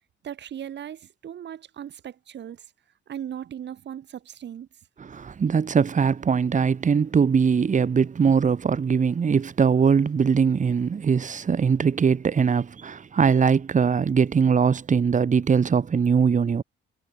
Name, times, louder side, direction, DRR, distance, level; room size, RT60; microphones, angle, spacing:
voice 1, 0.2-2.6 3.1-4.7, right 10 dB, 65° right, 3.3 m, -37 dB
voice 2, 5.0-16.6, right 6 dB, 40° right, 2.2 m, -21 dB
cardioid pair, 90°, 20 cm